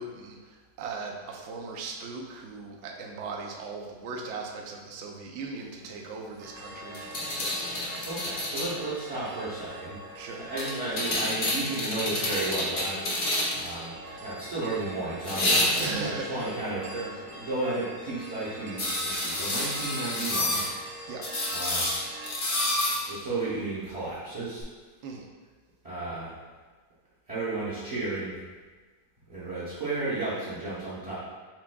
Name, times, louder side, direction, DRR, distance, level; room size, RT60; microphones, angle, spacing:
voice 1, 0.0-8.0 10.1-10.5 15.8-16.5 16.9-17.5 21.1-21.2 25.0-25.3, right 4 dB, 80° right, 0 dB, 0.6 m, -38 dB
sound 1, 6.4-22.4, right 1 dB, 65° right, 1.1 m, -43 dB
sound 2, 6.9-8.7 10.6-13.7 15.2-16.1 18.8-20.7 21.2-23.0 24.6-24.7, left 1 dB, 50° left, 0.6 m, -29 dB
voice 2, 8.0-10.0 10.3-16.9 17.4-20.6 21.5-21.9 23.1-24.6 25.8-26.4 27.3-28.4 29.3-31.2, right 2 dB, 25° right, -10 dB, 0.7 m, -33 dB
6.1 x 3.5 x 2.2 m, 1.4 s
omnidirectional pair, 2.0 m